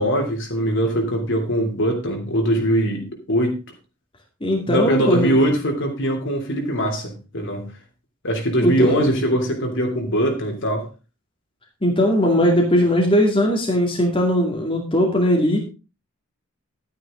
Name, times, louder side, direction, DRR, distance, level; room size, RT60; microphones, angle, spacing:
voice 1, 0.0-3.6 4.6-7.7 8.2-10.9, equal, 55° left, 3 dB, 3.2 m, -22 dB
voice 2, 4.4-5.4 8.6-9.1 11.8-15.6, equal, 25° left, 0 dB, 2.2 m, -19 dB
12.5 x 9.6 x 3.8 m, 0.31 s
head